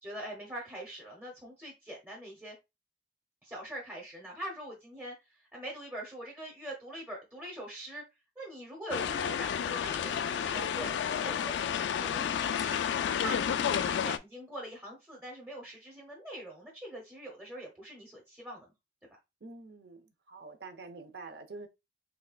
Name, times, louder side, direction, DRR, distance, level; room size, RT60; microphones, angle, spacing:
voice 1, 0.0-2.6 3.4-8.0 8.4-11.5 12.0-12.8 13.1-18.7, right 1 dB, 10° right, 0.8 m, -43 dB
sound 1, 8.9-14.2, left 8 dB, 85° left, 0.3 m, -31 dB
voice 2, 19.4-21.7, right 3 dB, 65° right, 0.7 m, -46 dB
4.1 x 3.2 x 2.3 m
head